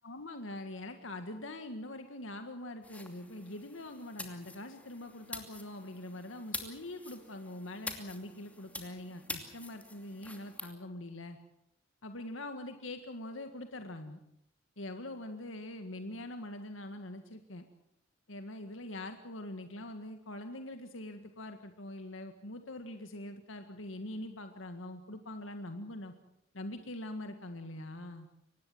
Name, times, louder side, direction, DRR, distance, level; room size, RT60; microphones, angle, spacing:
voice 1, 0.0-11.4 12.0-14.2 14.8-17.7 18.3-26.1 26.5-28.3, left 1 dB, 90° left, 7 dB, 1.8 m, -43 dB
sound 1, 2.8-10.7, left 2 dB, 5° left, 2.7 m, -46 dB
24.5 x 19.0 x 7.9 m, 0.77 s
head